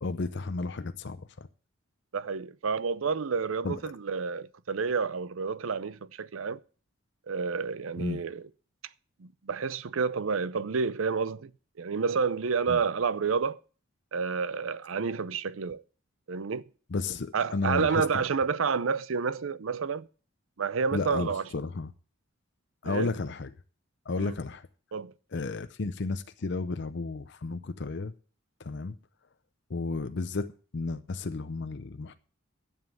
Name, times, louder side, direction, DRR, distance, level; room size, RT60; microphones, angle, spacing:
voice 1, 0.0-1.3 3.6-3.8 8.0-8.2 12.7-12.8 16.9-18.3 20.9-21.9 22.8-23.5 24.1-24.7 25.3-28.1 28.6-28.9 29.7-32.1, left 3 dB, 55° left, 0.6 m, -33 dB
voice 2, 2.1-6.6 7.3-8.4 9.2-11.5 11.8-13.6 14.1-15.8 16.3-16.6 17.3-20.1 20.6-21.4 22.8-23.1 24.2-24.3 24.9-25.1, right 5 dB, 80° right, 0.6 m, -29 dB
11.0 x 7.3 x 7.2 m
head